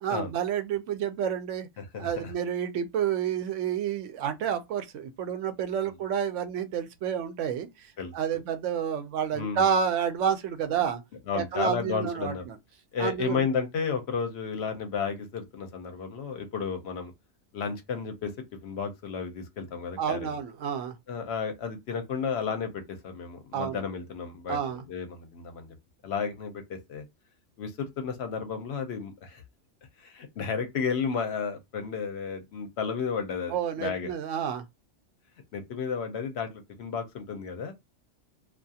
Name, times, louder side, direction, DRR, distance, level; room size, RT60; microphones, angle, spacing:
voice 1, 0.0-1.7 1.9-11.0 11.3-12.6 13.0-13.4 20.0-21.0 23.5-23.8 24.5-24.8 33.5-34.6, right 8 dB, 90° right, 0.9 m, -29 dB
voice 2, 1.8-2.3 8.0-8.1 9.3-9.7 11.3-12.4 12.9-17.1 17.5-18.3 18.6-20.4 21.1-24.6 24.9-25.8 26.0-27.0 27.6-29.4 30.0-34.1 35.5-37.7, left 6 dB, 65° left, 0.8 m, -32 dB
2.4 x 2.3 x 2.6 m
omnidirectional pair, 1.2 m